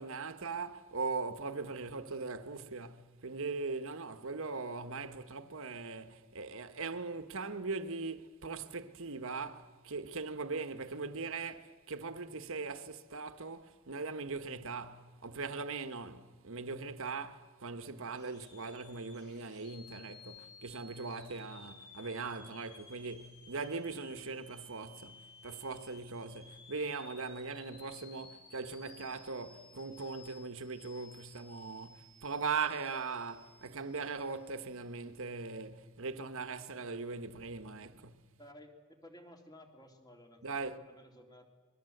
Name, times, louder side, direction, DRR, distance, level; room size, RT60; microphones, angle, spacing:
voice 1, 0.0-38.2 40.4-40.8, right 4 dB, 60° right, 1.3 m, -40 dB
sound 1, 18.0-34.8, left 4 dB, 50° left, 6.0 m, -57 dB
voice 2, 38.4-41.5, left 1 dB, 20° left, 2.9 m, -55 dB
26.5 x 22.0 x 7.9 m
head